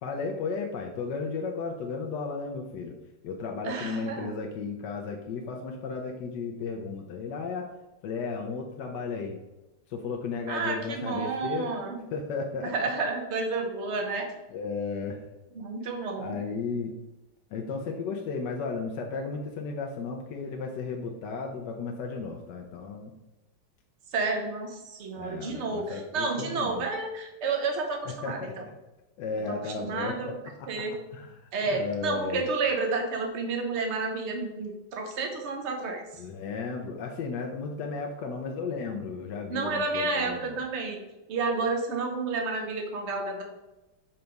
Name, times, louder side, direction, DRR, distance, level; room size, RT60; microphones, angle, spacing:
voice 1, 0.0-3.0 3.2-7.7 8.0-9.4 9.9-11.7 12.1-12.9 14.5-15.2 16.2-16.9 17.5-23.1 25.1-26.9 28.1-28.7 29.2-30.8 31.1-32.4 36.2-40.6, left 4 dB, 70° left, 1 dB, 1.2 m, -34 dB
voice 2, 3.6-4.3 10.5-12.0 12.6-14.3 15.5-16.4 24.1-28.4 29.5-30.3 30.7-31.0 31.5-36.0 39.5-41.0 41.3-43.4, right 3 dB, 45° right, 2 dB, 1.0 m, -30 dB
5.8 x 3.3 x 5.2 m, 1.0 s
omnidirectional pair, 2.2 m